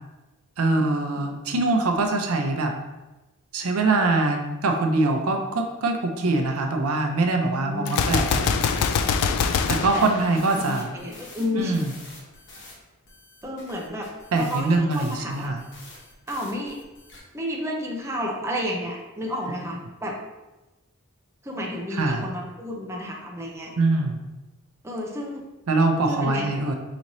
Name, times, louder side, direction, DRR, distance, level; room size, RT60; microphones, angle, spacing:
voice 1, 0.6-2.7 3.5-8.6 9.7-10.9 11.6-11.9 14.3-15.6 21.9-22.3 23.8-24.2 25.7-26.7, right 2 dB, 70° right, 3 dB, 0.5 m, -23 dB
voice 2, 7.2-8.0 9.6-10.1 10.6-11.8 13.4-14.1 14.3-15.5 16.3-16.8 17.3-20.2 21.4-23.7 24.8-25.4 26.1-26.7, left 1 dB, 15° right, -1 dB, 0.5 m, -31 dB
Gunshot gunfire, 7.9-11.0, left 6 dB, 80° left, 0.3 m, -24 dB
sound 1, 9.9-12.7 13.1-17.2, left 2 dB, 55° left, 0.9 m, -47 dB
5.0 x 3.0 x 2.7 m, 1.1 s
head